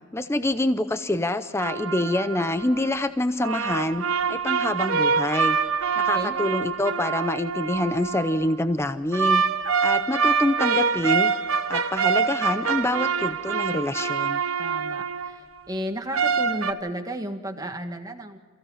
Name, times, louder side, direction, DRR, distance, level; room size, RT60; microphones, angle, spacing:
voice 1, 0.1-5.6 6.0-9.4 9.8-11.3 11.7-14.4, left 1 dB, 10° left, 11 dB, 0.6 m, -26 dB
sound 1, 1.6-2.9 3.4-8.5 9.1-15.3 16.1-16.7, right 5 dB, 75° right, 1.1 m, -25 dB
voice 2, 14.6-18.4, right 1 dB, 15° right, 5 dB, 1.6 m, -33 dB
28.5 x 16.0 x 5.7 m, 1.5 s
head